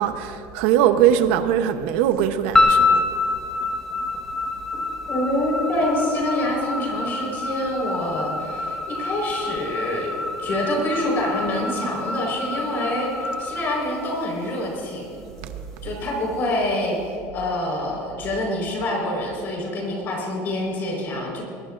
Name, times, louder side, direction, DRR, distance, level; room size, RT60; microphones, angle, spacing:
voice 1, 0.0-3.1 15.4-15.6, right 10 dB, 80° right, 0.9 m, -21 dB
sound 1, 2.5-14.8, left 3 dB, 10° left, 1.5 m, -26 dB
voice 2, 5.1-10.1 10.4-15.2 15.8-21.4, left 1 dB, 35° left, 4.6 m, -26 dB
21.5 x 21.0 x 2.6 m
cardioid pair, 175°, 6 cm